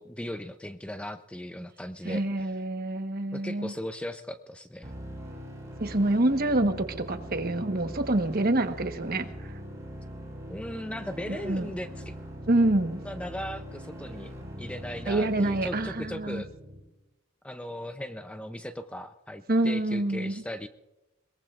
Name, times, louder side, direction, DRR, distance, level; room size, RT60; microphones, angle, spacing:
voice 1, 0.0-2.6 3.3-4.9 10.5-12.2 13.0-16.5 17.4-20.7, left 1 dB, 5° left, 8 dB, 0.5 m, -38 dB
voice 2, 2.0-3.7 5.8-6.7 7.1-9.5 11.3-11.7 12.5-13.0 15.1-16.4 19.5-20.3, right 1 dB, 45° right, 7 dB, 1.2 m, -26 dB
sound 1, 4.8-16.8, equal, 15° right, 5.3 m, -41 dB
22.0 x 21.5 x 2.5 m, 1.0 s
head